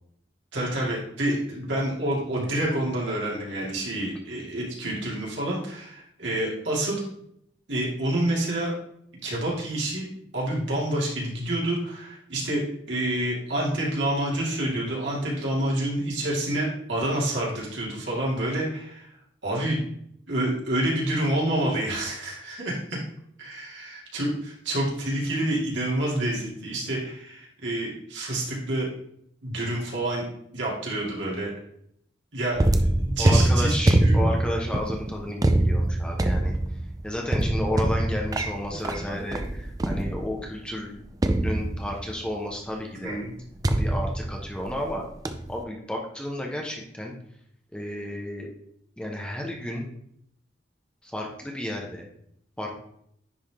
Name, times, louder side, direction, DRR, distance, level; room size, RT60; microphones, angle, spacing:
voice 1, 0.5-7.0 7.7-8.7 9.2-10.1 10.3-19.1 19.4-19.8 20.3-23.0 23.4-28.9 29.4-30.2 30.5-31.5 32.3-34.3 43.0-43.3, right 1 dB, 80° right, -4 dB, 2.6 m, -28 dB
sound 1, 32.5-40.5 41.2-42.2 43.6-44.9 45.2-45.6, right 1 dB, 20° right, 0.4 m, -24 dB
voice 2, 33.2-36.5 37.0-41.0 41.4-43.2 43.8-45.0 45.5-47.1 47.7-48.5 49.0-49.9 51.0-52.1 52.6-52.7, left 1 dB, 5° left, 0 dB, 0.9 m, -32 dB
10.0 x 3.6 x 3.6 m, 0.70 s
head